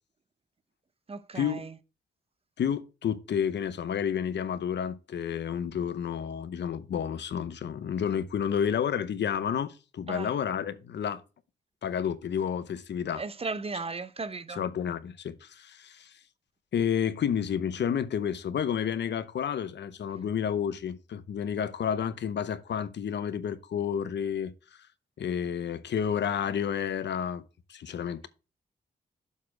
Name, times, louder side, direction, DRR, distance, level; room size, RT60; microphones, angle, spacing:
voice 1, 1.1-1.8 10.1-10.3 13.1-14.6, right 4 dB, 35° right, 0.7 m, -36 dB
voice 2, 2.6-11.2 11.8-13.2 14.5-16.1 16.7-24.5 25.2-27.4 27.7-28.3, left 8 dB, 80° left, 0.8 m, -30 dB
7.2 x 4.3 x 5.7 m
cardioid pair, 85°, 18 cm